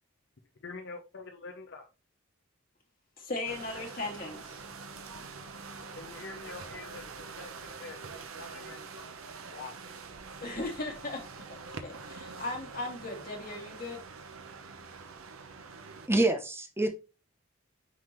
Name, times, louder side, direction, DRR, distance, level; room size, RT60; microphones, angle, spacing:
voice 1, 0.6-1.9 5.9-9.1 9.5-9.8 10.1-10.2, left 3 dB, 60° left, 0.8 m, -46 dB
voice 2, 3.2-4.6 10.4-14.0, left 2 dB, 45° left, 2.4 m, -38 dB
sound 1, 3.4-16.1, right 4 dB, 80° right, 1.0 m, -45 dB
voice 3, 16.1-16.9, right 2 dB, 10° right, 0.7 m, -26 dB
9.3 x 3.8 x 3.1 m
head